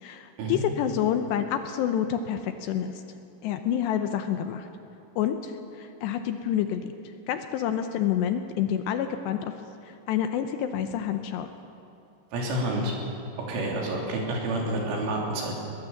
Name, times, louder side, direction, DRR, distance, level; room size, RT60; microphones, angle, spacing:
voice 1, 0.0-3.0 3.4-4.7 5.2-6.9 7.3-9.5 9.8-11.5, left 9 dB, 75° left, 7 dB, 2.7 m, -28 dB
voice 2, 12.3-12.9 13.5-15.5, right 1 dB, 80° right, -1 dB, 5.8 m, -29 dB
22.5 x 19.0 x 7.2 m, 2.7 s
omnidirectional pair, 5.5 m